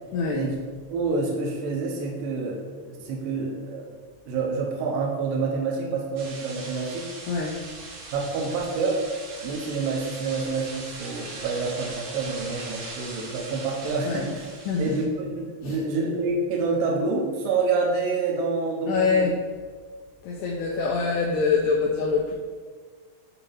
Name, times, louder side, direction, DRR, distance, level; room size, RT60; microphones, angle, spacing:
voice 1, 0.1-0.4 7.3-7.6 14.0-14.3 14.7-15.0 15.6-15.8 18.9-19.3 20.2-22.3, left 4 dB, 80° left, -2 dB, 2.0 m, -24 dB
voice 2, 0.9-3.9 4.3-7.1 8.1-9.0 9.4-14.5 14.8-19.3 20.8-20.9, right 4 dB, 80° right, -1 dB, 2.4 m, -27 dB
sound 1, 6.2-15.0, right 3 dB, 60° right, 1.7 m, -40 dB
7.2 x 2.8 x 5.3 m, 1.5 s
omnidirectional pair, 4.2 m